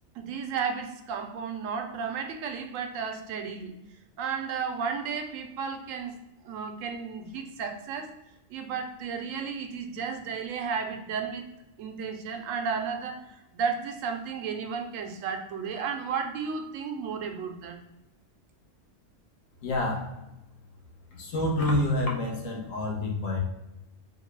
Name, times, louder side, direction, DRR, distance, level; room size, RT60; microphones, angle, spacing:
voice 1, 0.2-3.7 4.2-6.1 6.4-8.1 8.5-11.4 11.8-13.2 13.5-17.8, right 6 dB, 85° right, 5 dB, 1.0 m, -33 dB
voice 2, 19.6-20.1 21.1-23.4, left 1 dB, 90° left, -1 dB, 1.2 m, -28 dB
4.1 x 2.1 x 3.1 m, 0.94 s
omnidirectional pair, 1.3 m